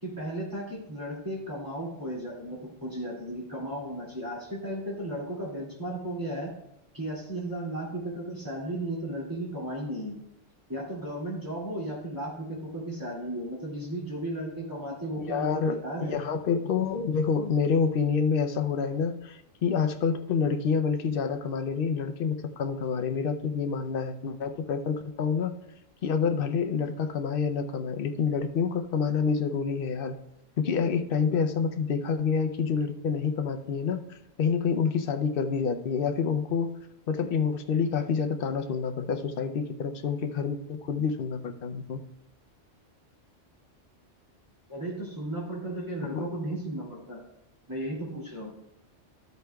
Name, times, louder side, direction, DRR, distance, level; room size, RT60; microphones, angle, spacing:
voice 1, 0.0-6.5 6.9-10.2 10.7-16.1 44.7-47.2 47.7-48.5, right 1 dB, 15° right, -5 dB, 2.4 m, -35 dB
voice 2, 15.2-25.5 26.0-30.2 30.6-36.8 37.1-42.0 46.1-46.3, left 6 dB, 55° left, 7 dB, 0.8 m, -28 dB
12.5 x 8.0 x 2.3 m, 0.84 s
omnidirectional pair, 1.2 m